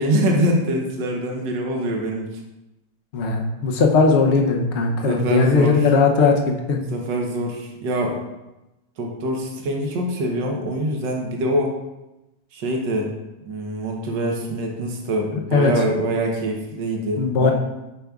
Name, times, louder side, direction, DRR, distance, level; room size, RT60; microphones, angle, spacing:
voice 1, 0.0-2.3 5.1-5.9 6.9-8.2 9.0-11.8 12.5-13.1 13.4-17.5, right 1 dB, 75° right, 0 dB, 1.6 m, -24 dB
voice 2, 3.1-6.8 15.5-15.7 17.2-17.5, left 4 dB, 60° left, 2 dB, 0.7 m, -18 dB
8.0 x 5.1 x 2.3 m, 0.99 s
omnidirectional pair, 1.9 m